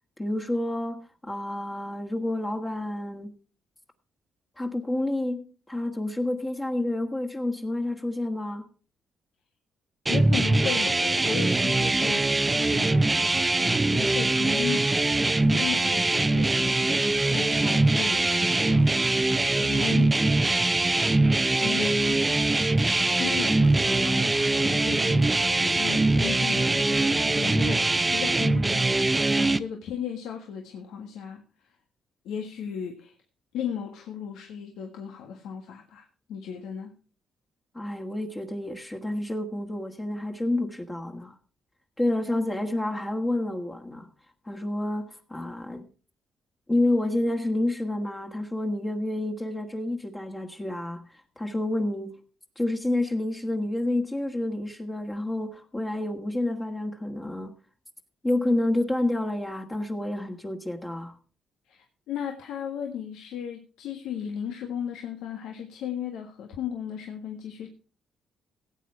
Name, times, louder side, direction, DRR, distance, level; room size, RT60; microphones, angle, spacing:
voice 1, 0.2-3.3 4.6-8.7 37.7-41.4 42.0-44.1 44.4-45.9 46.7-52.1 52.5-57.5 58.2-61.2, left 1 dB, 15° left, 1.6 m, -29 dB
voice 2, 10.1-14.9 15.4-18.9 19.6-20.4 21.6-22.2 23.1-31.4 32.2-33.1 33.5-36.9 61.7-67.7, left 8 dB, 90° left, 1.6 m, -35 dB
sound 1, 10.1-29.6, right 2 dB, 20° right, 0.6 m, -23 dB
17.0 x 8.4 x 4.6 m
cardioid pair, 90°, 0 cm